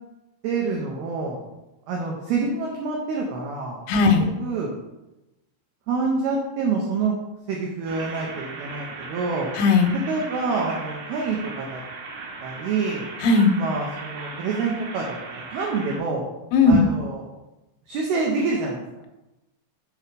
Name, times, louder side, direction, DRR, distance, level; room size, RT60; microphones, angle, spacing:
voice 1, 0.4-1.4 1.9-3.8 4.2-4.7 5.9-7.1 7.5-9.5 10.1-11.8 12.4-13.1 13.5-16.3 16.6-17.3 17.9-19.1, right 4 dB, 85° right, -1 dB, 2.2 m, -27 dB
voice 2, 3.9-4.3 9.6-10.0 13.2-13.6 16.5-16.8, left 4 dB, 85° left, 5 dB, 2.9 m, -17 dB
sound 1, 7.9-16.0, right 3 dB, 65° right, 2.9 m, -37 dB
7.0 x 4.7 x 5.1 m, 0.98 s
omnidirectional pair, 5.7 m